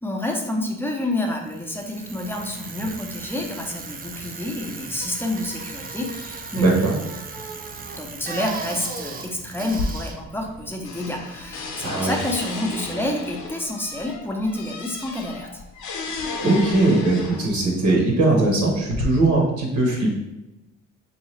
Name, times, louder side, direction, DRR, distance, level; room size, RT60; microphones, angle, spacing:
voice 1, 0.0-6.8 7.9-15.6, left 1 dB, 5° left, 1 dB, 0.6 m, -29 dB
Bicycle, 1.4-11.4, right 4 dB, 30° right, 0.4 m, -37 dB
voice 2, 6.5-6.9 11.8-12.1 16.4-20.1, right 2 dB, 70° right, -1 dB, 1.1 m, -20 dB
sound 1, 9.7-10.6 10.8-17.7 18.4-19.0, left 4 dB, 85° left, 0.7 m, -33 dB
3.7 x 2.7 x 3.1 m, 0.94 s
cardioid pair, 90°, 30 cm